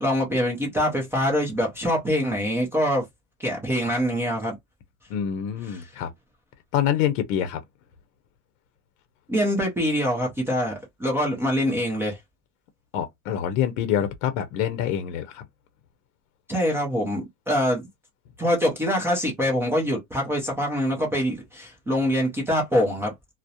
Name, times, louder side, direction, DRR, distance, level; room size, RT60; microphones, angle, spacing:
voice 1, 0.0-3.1 3.4-4.6 5.7-5.9 9.3-12.2 16.5-17.9 18.4-23.1, equal, 5° right, 0.3 m, -24 dB
voice 2, 5.1-6.1 6.7-7.6 12.9-15.4, left 10 dB, 60° left, 0.6 m, -26 dB
2.3 x 2.0 x 2.7 m
supercardioid pair, 130°, 44 cm